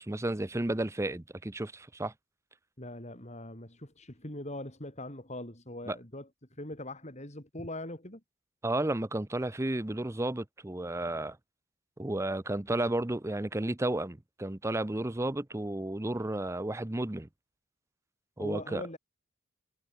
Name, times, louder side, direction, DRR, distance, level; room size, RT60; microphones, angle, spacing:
voice 1, 0.0-2.1 5.9-6.0 8.6-11.4 12.0-17.3 18.4-18.8, right 1 dB, 15° right, 0.6 m, -32 dB
voice 2, 2.8-8.2 18.4-19.0, left 1 dB, 30° left, 5.0 m, -41 dB
head